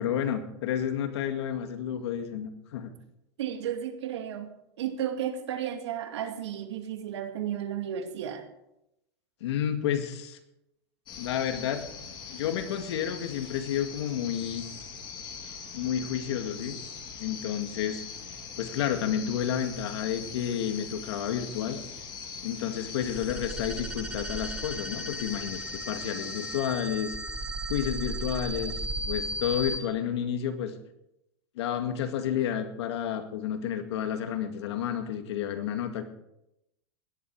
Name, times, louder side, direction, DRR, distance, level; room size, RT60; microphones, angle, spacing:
voice 1, 0.0-2.9 9.4-10.4 11.2-11.8 12.3-14.7 15.7-16.8 17.2-18.0 18.6-21.8 22.4-25.6 25.9-27.1 27.7-30.7 31.6-36.1, left 9 dB, 80° left, 7 dB, 2.1 m, -30 dB
voice 2, 3.4-4.5 4.8-8.4, right 9 dB, 90° right, 6 dB, 2.4 m, -33 dB
sound 1, 11.1-26.6, left 6 dB, 35° left, 3.1 m, -42 dB
sound 2, 23.0-29.8, right 1 dB, 5° right, 0.8 m, -35 dB
17.0 x 12.0 x 4.9 m, 0.85 s
supercardioid pair, 150°, 14 cm